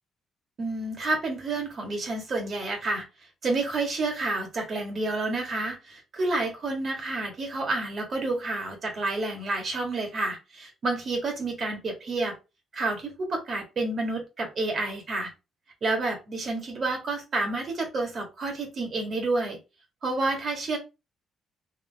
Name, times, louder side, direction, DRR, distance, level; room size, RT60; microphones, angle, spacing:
voice 1, 0.6-3.0 3.4-12.3 12.7-15.3 15.8-19.6 20.0-20.8, right 2 dB, 45° right, 1.7 m, -29 dB
3.8 x 3.0 x 3.4 m
cardioid pair, 115°, 0 cm